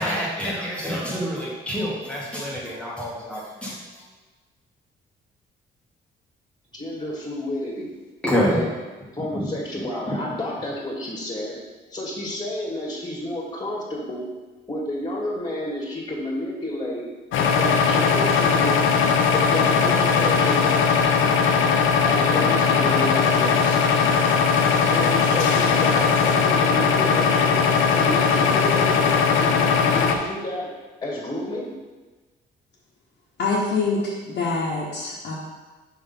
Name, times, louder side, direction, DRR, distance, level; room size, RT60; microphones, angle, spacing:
voice 1, 0.0-3.7 8.2-8.6 10.1-10.2, equal, 5° left, -6 dB, 1.4 m, -26 dB
voice 2, 6.7-7.9 8.4-8.7 9.1-11.5 11.9-14.2 14.7-17.1 17.6-18.8 19.3-20.7 22.0-23.8 24.8-27.6 27.9-30.7 31.0-31.7, left 1 dB, 20° left, -2 dB, 1.7 m, -30 dB
sound 1, 17.3-30.2, left 6 dB, 80° left, 0.6 m, -19 dB
voice 3, 33.4-35.3, left 3 dB, 55° left, -7 dB, 1.2 m, -25 dB
5.4 x 3.5 x 5.3 m, 1.3 s
cardioid pair, 90°, 20 cm